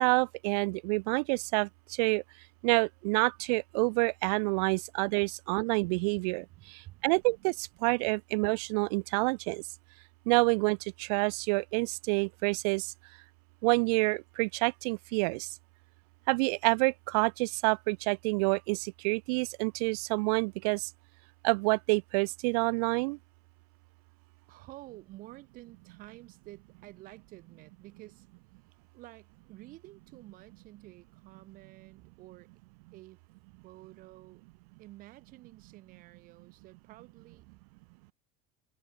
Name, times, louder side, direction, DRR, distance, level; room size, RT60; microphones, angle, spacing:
voice 1, 0.0-1.7 2.0-2.2 2.6-9.6 10.3-12.9 13.6-15.5 16.3-20.9 21.4-23.2, right 30 dB, 80° right, 0.4 m, -28 dB
voice 2, 6.6-7.0 24.5-28.3 28.9-32.5 32.9-33.2 33.6-34.4 34.8-37.6, right 17 dB, 45° right, 1.7 m, -51 dB
cardioid pair, 160°, 20 cm